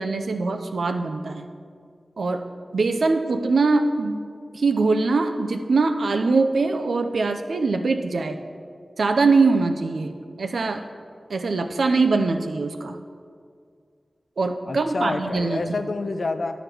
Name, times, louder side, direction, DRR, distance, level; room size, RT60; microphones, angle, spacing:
voice 1, 0.0-1.5 2.2-2.5 2.7-4.2 4.5-8.4 9.0-10.1 10.4-10.8 11.3-13.0 14.4-15.6, right 3 dB, 85° right, 6 dB, 0.6 m, -22 dB
voice 2, 14.7-16.6, left 3 dB, 70° left, 8 dB, 0.6 m, -28 dB
10.5 x 5.1 x 6.1 m, 2.1 s
cardioid pair, 45°, 0 cm